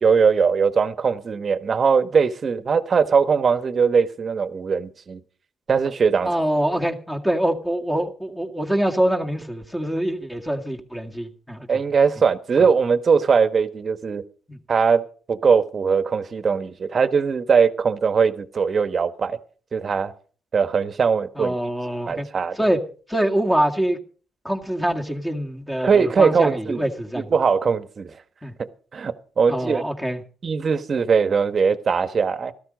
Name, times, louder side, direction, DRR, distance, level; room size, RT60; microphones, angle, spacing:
voice 1, 0.0-5.2 5.7-6.3 11.7-14.2 14.7-15.0 15.3-19.4 19.7-20.1 20.5-21.6 22.1-22.6 25.8-26.9 27.1-28.1 28.9-29.8 30.4-32.5, right 5 dB, 45° right, 13 dB, 1.1 m, -20 dB
voice 2, 6.3-11.7 14.5-14.6 21.4-22.3 22.6-22.8 23.1-24.0 24.4-27.3 28.4-28.5 29.5-30.2, right 1 dB, 5° left, 3 dB, 1.9 m, -24 dB
13.5 x 13.0 x 5.1 m, 0.40 s
cardioid pair, 90°, 0 cm